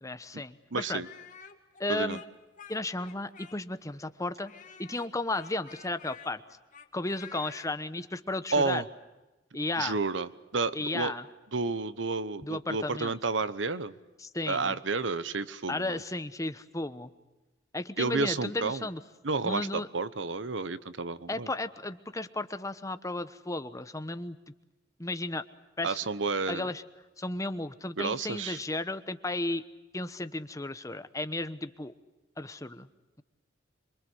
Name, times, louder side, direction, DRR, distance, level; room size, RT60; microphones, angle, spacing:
voice 1, 0.0-1.0 1.8-2.2 2.7-4.5 4.8-6.4 6.9-8.8 9.5-10.0 10.7-11.2 12.4-13.2 14.2-14.8 15.7-17.1 17.7-19.0 19.4-19.9 21.3-24.4 25.0-25.4 25.8-26.0 26.5-26.8 27.2-29.6 29.9-31.9 32.4-32.9, left 2 dB, 20° left, 11 dB, 1.0 m, -34 dB
voice 2, 0.7-1.1 1.9-2.2 8.5-8.8 9.8-11.1 11.5-13.9 14.5-16.0 18.0-18.9 19.2-21.5 25.8-26.7 28.0-28.6, right 4 dB, 85° right, 15 dB, 1.1 m, -31 dB
Speech, 0.9-3.8 4.5-7.7, left 7 dB, 45° left, 2.0 m, -50 dB
26.5 x 24.0 x 8.0 m, 1.1 s
head